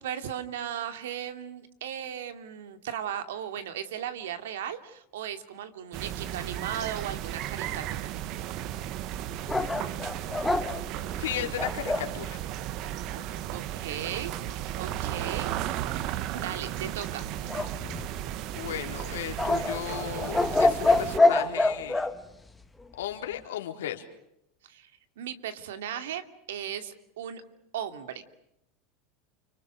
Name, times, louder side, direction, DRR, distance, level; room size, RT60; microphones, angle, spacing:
voice 1, 0.0-8.1 13.1-15.8 16.3-17.2 24.6-24.9 25.2-27.4 27.7-28.2, right 9 dB, 85° right, 9 dB, 2.7 m, -37 dB
sound 1, 5.9-21.2, right 12 dB, 55° right, 1.5 m, -35 dB
sound 2, 9.5-12.1 17.5-18.4 19.4-22.1, left 2 dB, 10° left, 1.8 m, -25 dB
voice 2, 11.2-12.4 18.5-22.1 22.9-24.1, left 11 dB, 90° left, 4 dB, 4.1 m, -35 dB
30.0 x 25.5 x 6.6 m, 0.80 s
supercardioid pair, 120°, 0 cm